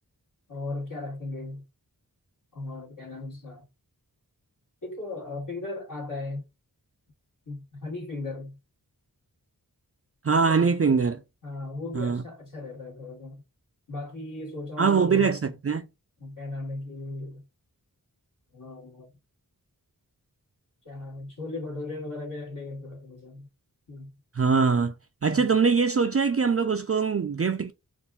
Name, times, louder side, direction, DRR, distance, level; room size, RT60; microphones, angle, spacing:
voice 1, 0.5-1.6 2.5-3.6 4.8-6.4 7.5-8.6 10.4-10.7 11.4-13.4 13.9-15.3 16.2-17.4 18.5-19.1 20.8-23.5 23.9-24.1 25.3-25.5, left 2 dB, 60° left, 2.0 m, -37 dB
voice 2, 10.2-11.2 11.9-12.2 14.8-15.9 24.3-24.9 25.2-27.7, right 5 dB, 40° right, 0.5 m, -22 dB
4.5 x 2.5 x 3.4 m
wide cardioid pair, 70°, 37 cm